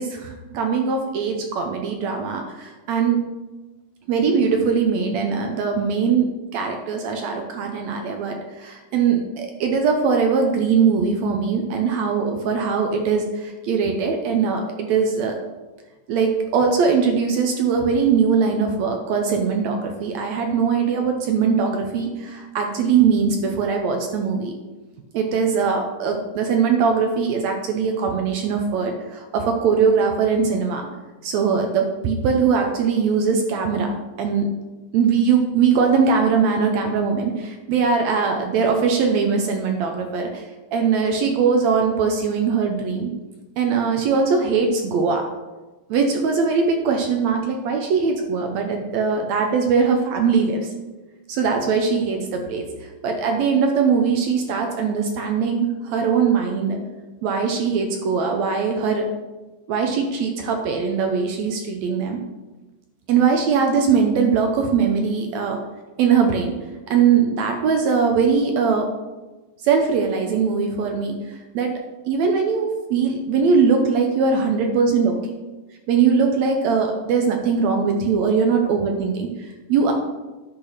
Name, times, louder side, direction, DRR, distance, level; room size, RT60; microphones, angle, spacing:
voice 1, 0.0-3.3 4.1-15.4 16.1-24.5 25.1-30.9 31.2-33.9 34.2-34.5 34.9-40.5 40.7-43.1 43.6-45.3 45.9-50.7 51.3-52.7 53.0-56.8 57.2-59.1 59.7-62.2 63.1-65.6 66.0-66.5 66.9-68.9 69.6-71.8 72.1-75.2 75.9-79.9, right 5 dB, 75° right, 4 dB, 1.6 m, -21 dB
10.0 x 4.5 x 5.7 m, 1.2 s
omnidirectional pair, 4.1 m